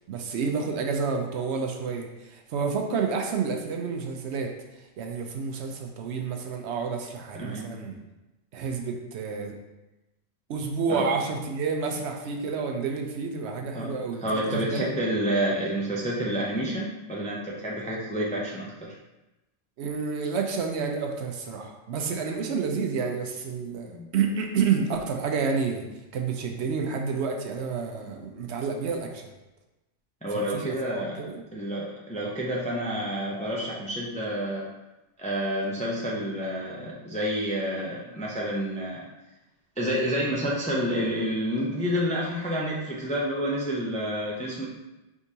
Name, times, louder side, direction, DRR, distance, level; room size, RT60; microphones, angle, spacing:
voice 1, 0.1-4.5 5.0-8.0 8.5-9.5 10.5-14.9 19.8-25.8 26.1-29.3 30.3-31.4, right 5 dB, 70° right, 2 dB, 0.8 m, -29 dB
voice 2, 7.3-7.7 10.9-11.1 13.7-13.9 14.2-18.7 23.8-24.1 30.2-31.3 31.5-34.7 35.2-39.1 39.8-44.7, equal, 10° left, -4 dB, 0.3 m, -29 dB
4.7 x 3.6 x 2.8 m, 1.0 s
omnidirectional pair, 1.3 m